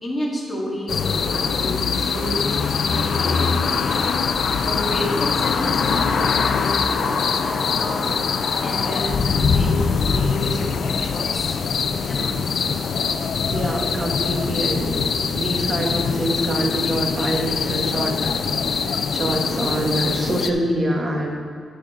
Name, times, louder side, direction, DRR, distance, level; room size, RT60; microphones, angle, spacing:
voice 1, 0.0-4.0 4.6-8.1 8.6-11.6 12.0-12.3 19.2-19.6, equal, 5° left, -6 dB, 2.0 m, -31 dB
sound 1, 0.9-20.5, left 5 dB, 50° left, 0.4 m, -22 dB
voice 2, 13.5-18.3 19.1-21.3, right 1 dB, 30° right, 1 dB, 1.1 m, -25 dB
10.5 x 8.3 x 3.8 m, 2.3 s
wide cardioid pair, 175°, 0 cm